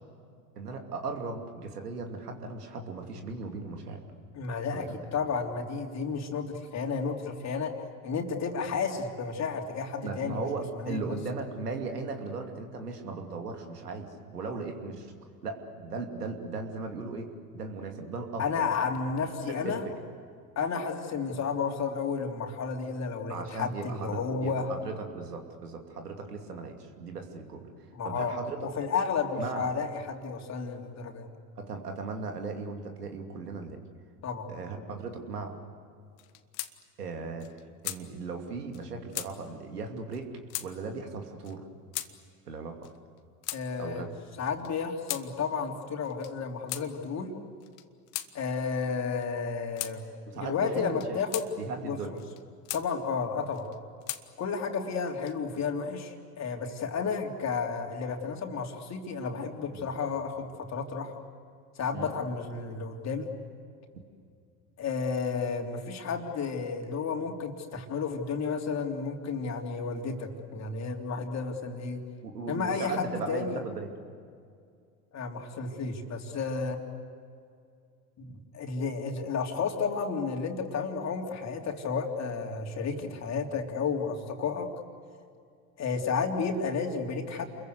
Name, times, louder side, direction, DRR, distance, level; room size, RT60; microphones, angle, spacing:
voice 1, 0.6-4.0 4.7-4.8 10.0-15.1 15.4-18.7 19.5-19.8 23.3-27.7 28.0-28.6 29.4-29.7 31.6-33.8 34.5-35.6 37.0-40.3 40.6-41.6 42.5-42.9 43.8-44.1 50.3-51.1 51.6-52.1 59.8-59.9 61.9-62.1 72.2-73.9 83.0-83.2, right 4 dB, 85° right, 4 dB, 2.8 m, -37 dB
voice 2, 4.3-7.7 8.0-10.5 10.7-11.2 18.4-19.9 20.5-24.7 27.9-31.3 34.2-34.5 43.5-44.1 44.4-47.3 48.3-50.0 50.3-51.5 51.8-52.0 52.7-53.7 54.4-61.1 61.8-63.3 64.8-72.0 72.5-73.6 75.1-76.8 78.2-84.7 85.8-87.5, left 5 dB, 35° left, 2 dB, 3.4 m, -32 dB
sound 1, 36.2-36.7 37.1-37.2 37.4-38.0 38.7-38.8 39.1-39.3 40.1-40.2 40.5-40.7 41.4-41.6 41.9-42.1 42.8-43.6 44.4-45.3 46.0-46.3 46.7-46.9 47.6-48.3 49.2-49.3 49.8-50.0 50.8-51.5 52.2-52.9 53.5-54.2 55.0-55.6, left 16 dB, 65° left, 1.5 m, -37 dB
28.5 x 22.5 x 8.2 m, 2.3 s
hypercardioid pair, 85°, 45 cm